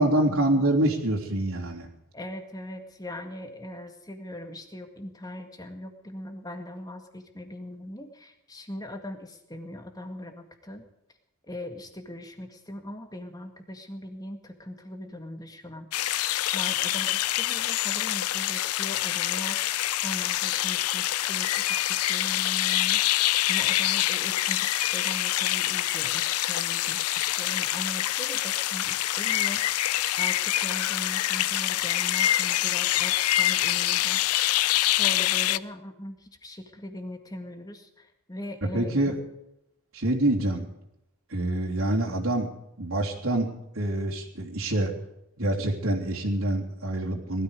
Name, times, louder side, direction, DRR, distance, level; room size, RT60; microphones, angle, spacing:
voice 1, 0.0-1.9 38.6-39.2 39.9-40.7 41.3-42.5 42.8-44.9 45.4-47.4, right 1 dB, 75° right, -3 dB, 3.3 m, -26 dB
voice 2, 2.1-10.9 11.5-15.9 16.2-19.6 20.0-23.0 23.5-29.6 30.2-34.2 34.9-39.0, left 1 dB, 15° left, 5 dB, 1.9 m, -40 dB
sound 1, 15.9-35.6, left 14 dB, 90° left, 0.5 m, -26 dB
19.5 x 13.0 x 5.2 m, 0.84 s
head